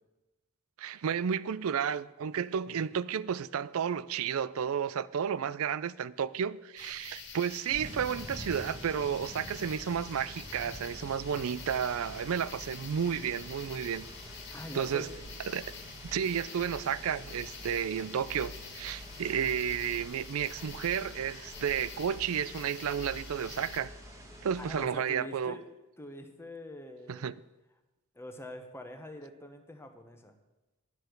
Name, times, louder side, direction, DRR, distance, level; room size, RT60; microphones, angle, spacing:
voice 1, 0.8-14.0 14.7-15.1 15.5-15.6 16.0-23.9 24.4-25.6 27.1-27.3, right 8 dB, 65° right, 0.4 m, -32 dB
sound 1, 6.8-23.8, left 4 dB, 55° left, 1.7 m, -47 dB
sound 2, 7.7-24.9, equal, 15° right, 1.5 m, -48 dB
voice 2, 14.5-15.3 24.6-27.3 28.1-30.3, left 1 dB, 10° left, 1.1 m, -45 dB
11.0 x 6.6 x 8.0 m
head